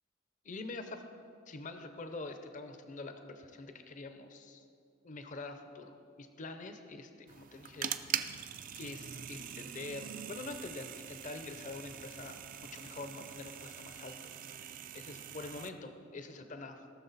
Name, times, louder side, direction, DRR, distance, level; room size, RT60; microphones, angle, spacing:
voice 1, 0.4-1.0 1.5-4.7 5.0-8.0 8.3-8.5 8.8-12.4 12.7-14.4 14.9-16.9, left 3 dB, 35° left, 7 dB, 0.6 m, -45 dB
sound 1, 7.3-15.7, right 9 dB, 40° right, 0.4 m, -43 dB
17.5 x 6.4 x 4.0 m, 2.5 s
head